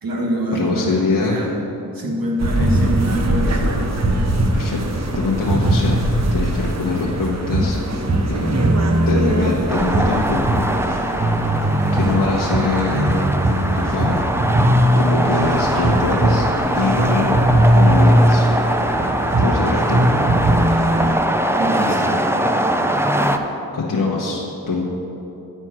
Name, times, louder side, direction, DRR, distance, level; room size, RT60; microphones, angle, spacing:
voice 1, 0.0-1.5 1.9-3.8 21.6-22.2, right 1 dB, 65° right, -1 dB, 1.7 m, -25 dB
voice 2, 0.5-1.5 2.6-2.7 4.5-4.8 5.1-6.0 6.3-7.8 8.3-8.7 9.1-10.4 11.9-13.3 13.7-14.2 14.9-16.5 16.8-17.3 17.7-18.5 19.4-20.0 23.7-24.8, left 3 dB, 65° left, -4 dB, 1.1 m, -23 dB
sound 1, 2.4-21.1, right 1 dB, 45° right, 0.9 m, -19 dB
sound 2, 9.7-23.4, right 1 dB, 5° right, 0.5 m, -22 dB
9.4 x 4.5 x 6.0 m, 3.0 s
cardioid pair, 55°, 37 cm